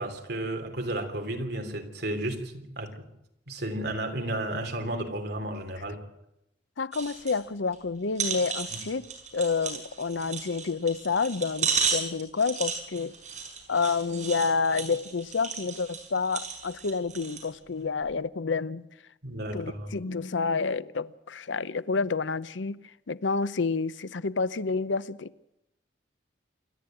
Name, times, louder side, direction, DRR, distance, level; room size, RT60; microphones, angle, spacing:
voice 1, 0.0-2.9 3.5-6.0 8.7-8.8 19.2-19.9, right 1 dB, 60° right, 3.2 m, -33 dB
voice 2, 6.8-9.1 9.3-13.1 13.7-18.9 19.5-22.8 23.1-25.3, left 4 dB, 85° left, 0.7 m, -29 dB
sound 1, 6.9-7.4 7.7-7.8 8.1-17.5 18.0-18.1, right 6 dB, 40° right, 5.5 m, -34 dB
27.5 x 11.5 x 9.0 m
head